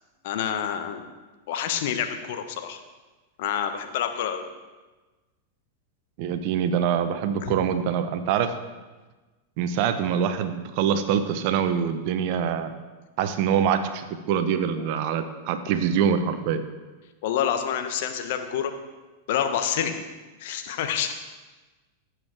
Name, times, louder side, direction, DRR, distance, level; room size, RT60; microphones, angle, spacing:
voice 1, 0.2-1.0 1.5-2.8 3.4-4.4 7.4-7.5 14.8-15.0 17.2-18.7 19.3-20.0 20.4-21.1, left 9 dB, 50° left, 7 dB, 1.1 m, -28 dB
voice 2, 6.2-8.5 9.6-12.7 13.2-16.6, right 8 dB, 45° right, 10 dB, 0.9 m, -24 dB
15.5 x 7.6 x 3.4 m, 1.2 s
figure-of-eight pair, 90°, 0 cm